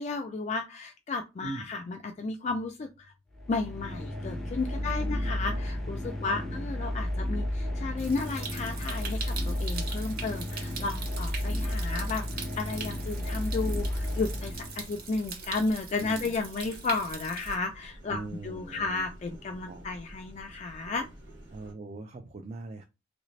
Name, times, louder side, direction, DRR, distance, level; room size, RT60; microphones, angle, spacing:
voice 1, 0.0-3.1 3.5-21.1, left 3 dB, 40° left, 5 dB, 0.3 m, -33 dB
sound 1, 3.3-15.1, left 1 dB, ahead, 0.7 m, -33 dB
voice 2, 4.8-5.6 6.2-6.7 16.0-16.3 18.1-19.0 19.7-19.8 21.5-22.8, right 3 dB, 35° right, 7 dB, 0.4 m, -41 dB
Stream, 8.0-17.6, right 5 dB, 55° right, 0.8 m, -42 dB
sound 2, 12.5-21.7, equal, 75° right, 1.1 m, -48 dB
3.1 x 2.6 x 3.1 m, 0.26 s
head